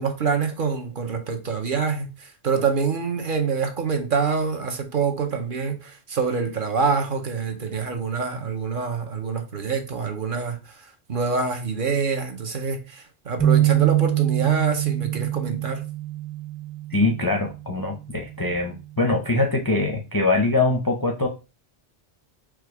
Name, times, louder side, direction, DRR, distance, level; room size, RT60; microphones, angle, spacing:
voice 1, 0.0-15.8, right 5 dB, 50° right, 0.8 m, -26 dB
sound 1, 13.4-17.7 18.1-18.4 19.2-19.6, right 13 dB, 70° right, 1.8 m, -24 dB
voice 2, 16.9-21.3, left 2 dB, 30° left, 0.4 m, -23 dB
4.8 x 2.4 x 4.6 m
omnidirectional pair, 1.2 m